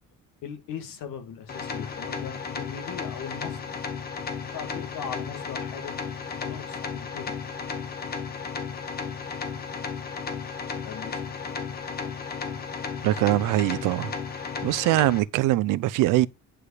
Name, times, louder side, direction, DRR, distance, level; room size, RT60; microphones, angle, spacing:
voice 1, 0.4-3.8 4.4-5.9 6.3-7.3 10.8-11.2, left 8 dB, 85° left, 2.2 m, -39 dB
sound 1, 1.5-15.2, left 5 dB, 30° left, 1.3 m, -34 dB
voice 2, 13.0-14.1 14.6-16.3, right 16 dB, 80° right, 0.7 m, -22 dB
10.0 x 4.9 x 4.9 m
cardioid pair, 165°, 32 cm